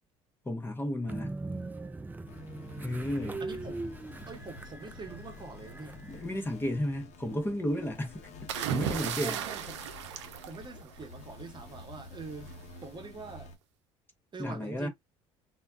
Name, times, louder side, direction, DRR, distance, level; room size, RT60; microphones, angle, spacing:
voice 1, 0.4-1.4 2.8-3.4 6.0-9.4 14.4-14.9, left 1 dB, 15° left, 0.8 m, -33 dB
Train, 1.1-6.4, right 2 dB, 10° right, 0.4 m, -41 dB
sound 1, 2.3-13.6, left 3 dB, 55° left, 0.8 m, -50 dB
voice 2, 3.4-3.9 4.3-6.0 9.2-9.9 10.5-12.6 12.8-13.5 14.3-14.9, right 4 dB, 30° right, 0.9 m, -44 dB
sound 2, 8.5-11.2 12.5-12.8, right 10 dB, 85° right, 0.4 m, -35 dB
2.2 x 2.2 x 3.5 m
hypercardioid pair, 65°, 15 cm